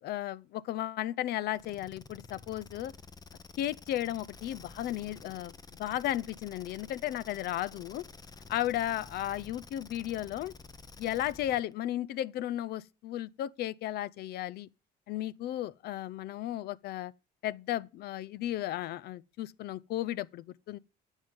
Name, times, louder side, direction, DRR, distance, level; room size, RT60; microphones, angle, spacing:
voice 1, 0.0-2.9 3.6-5.5 5.8-8.0 8.5-10.5 11.0-14.7 15.1-17.1 17.4-20.8, left 13 dB, 70° left, 0.5 m, -34 dB
sound 1, 1.5-11.7, left 4 dB, 25° left, 0.9 m, -51 dB
10.0 x 7.4 x 5.3 m
cardioid pair, 110°, 17 cm